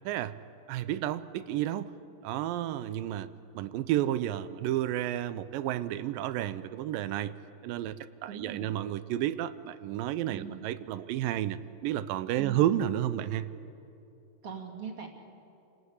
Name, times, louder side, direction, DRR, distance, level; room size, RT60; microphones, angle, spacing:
voice 1, 0.7-1.9 2.2-3.3 3.6-7.3 7.6-13.5, right 12 dB, 75° right, 14 dB, 2.3 m, -31 dB
voice 2, 8.3-8.7 10.3-10.7 12.4-12.7 14.4-15.1, right 6 dB, 40° right, 0 dB, 3.0 m, -41 dB
28.5 x 18.0 x 8.2 m, 2.8 s
omnidirectional pair, 4.3 m